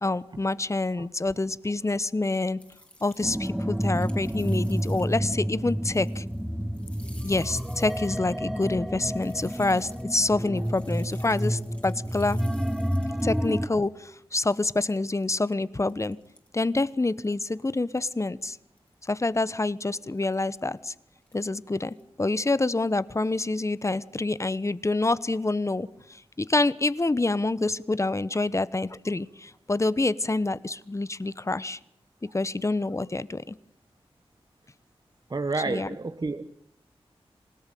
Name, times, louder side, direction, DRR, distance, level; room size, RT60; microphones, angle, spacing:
voice 1, 0.0-2.6 3.0-6.2 7.2-12.4 13.2-16.2 16.5-18.6 19.0-20.9 21.3-31.8 32.3-33.6 35.7-35.9, left 2 dB, 30° left, 17 dB, 1.1 m, -27 dB
sound 1, 2.6-5.4 5.7-6.4 6.7-13.6 14.1-14.2 14.5-15.3 15.8-16.5 17.2-17.6 18.0-18.2 18.8-19.1 19.5-19.6 20.1-20.5 21.2-21.4 21.8-22.0, left 1 dB, 15° left, 3.7 m, -54 dB
sound 2, 3.2-13.7, equal, 5° right, 1.1 m, -30 dB
voice 2, 35.3-36.5, right 3 dB, 45° right, 9 dB, 1.3 m, -30 dB
26.5 x 18.0 x 9.3 m, 0.72 s
wide cardioid pair, 70°, 10 cm